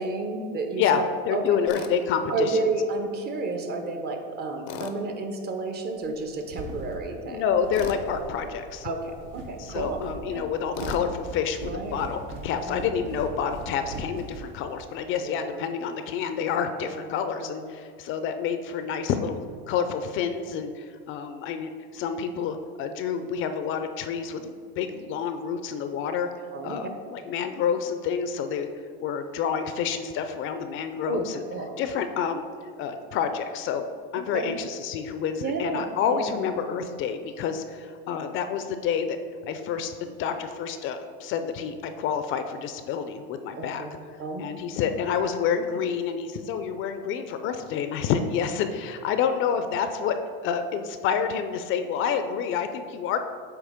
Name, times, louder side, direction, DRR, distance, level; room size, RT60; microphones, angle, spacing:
voice 1, 0.0-1.6 2.3-7.4 8.8-10.5 11.6-12.0 12.5-12.8 15.2-15.6 16.8-17.1 17.4-17.6 26.5-26.8 31.0-31.8 34.3-34.6 35.4-36.5 43.5-43.9 44.2-44.4, right 3 dB, 35° right, 5 dB, 0.8 m, -31 dB
voice 2, 1.3-2.7 7.3-8.9 9.6-26.3 26.6-28.7 29.0-31.4 31.8-32.4 32.8-33.9 34.1-39.2 39.4-43.8 44.4-50.2 50.4-53.2, left 7 dB, 45° left, 8 dB, 0.5 m, -28 dB
Tools, 1.7-1.9 4.7-5.0 7.7-8.0 10.7-11.1, left 7 dB, 85° left, 0.7 m, -35 dB
sound 1, 6.3-15.0, right 3 dB, 65° right, 1.0 m, -40 dB
8.2 x 3.0 x 5.0 m, 2.1 s
supercardioid pair, 120°, 29 cm